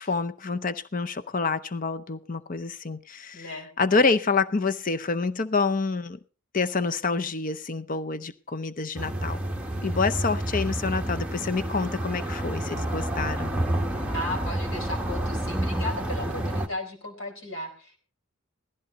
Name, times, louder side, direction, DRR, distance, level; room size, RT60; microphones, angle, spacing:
voice 1, 0.0-3.5 3.8-6.2 6.5-9.4 9.8-13.5, left 4 dB, 40° left, 0.7 m, -27 dB
voice 2, 3.3-4.1 14.1-18.0, left 1 dB, 60° left, 4.5 m, -36 dB
sound 1, 8.9-16.7, right 1 dB, 5° right, 1.2 m, -29 dB
16.5 x 14.0 x 4.1 m
head